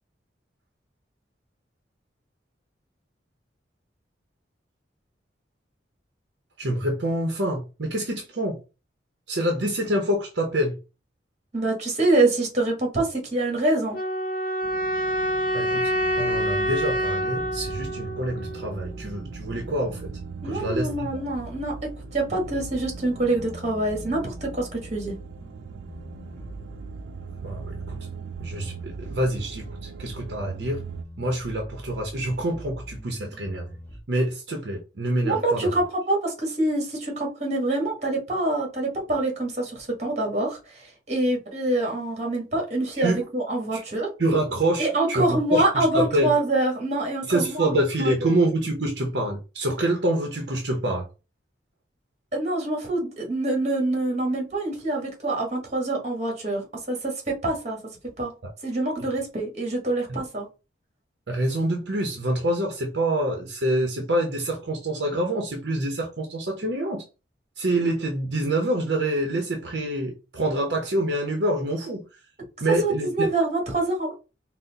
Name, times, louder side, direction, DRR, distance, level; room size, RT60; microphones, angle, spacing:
voice 1, 6.6-8.6 9.3-10.8 15.5-20.1 20.4-21.1 27.4-28.0 28.4-30.8 31.2-33.7 34.1-35.7 43.0-43.2 43.7-43.8 44.2-46.3 47.2-51.1 61.3-67.0 67.6-72.0 72.6-73.3, right 1 dB, 65° right, 0.7 m, -26 dB
voice 2, 11.5-14.0 20.4-25.1 35.2-44.1 44.8-48.4 52.3-57.8 58.2-58.3 58.6-60.5 72.8-74.1, right 2 dB, 35° right, 1.4 m, -25 dB
sound 1, 13.9-18.9, equal, 50° left, 0.7 m, -27 dB
sound 2, 14.6-31.0, right 6 dB, 90° right, 0.4 m, -41 dB
sound 3, 16.0-34.0, equal, 10° left, 0.7 m, -43 dB
4.1 x 2.1 x 4.0 m
head